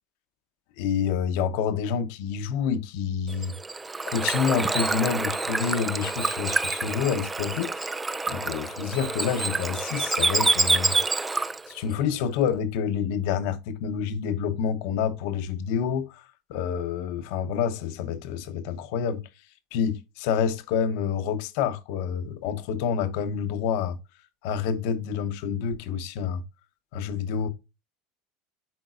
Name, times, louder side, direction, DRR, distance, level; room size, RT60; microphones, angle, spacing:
voice 1, 0.8-3.5 4.1-7.9 8.3-11.0 11.7-16.2 16.5-19.2 19.7-24.0 24.4-26.4 26.9-27.5, left 7 dB, 70° left, 0.9 m, -28 dB
Bird / Water, 3.3-11.7, right 3 dB, 15° right, 0.4 m, -27 dB
10.5 x 3.9 x 2.5 m
supercardioid pair, 115°, 0 cm